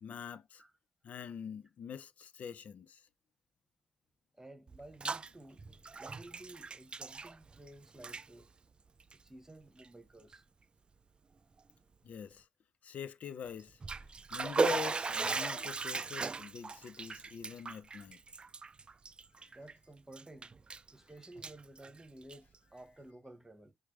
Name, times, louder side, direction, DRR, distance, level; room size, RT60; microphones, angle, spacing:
voice 1, 0.0-0.6 1.0-3.0 12.0-12.5 12.8-13.8 14.3-18.2 19.4-19.5, left 7 dB, 70° left, 0.4 m, -44 dB
voice 2, 4.4-5.6 5.9-8.5 9.1-10.4 19.5-20.5 20.9-23.7, right 1 dB, 20° right, 1.2 m, -54 dB
Bathtub (filling or washing), 4.7-5.3 5.6-7.7 7.9-8.2 9.0-9.1 9.8-9.9 10.3-10.4 13.6-19.7 20.1-20.9 21.2-22.6, right 4 dB, 40° right, 0.3 m, -37 dB
5.8 x 2.0 x 3.2 m
supercardioid pair, 50°, 3 cm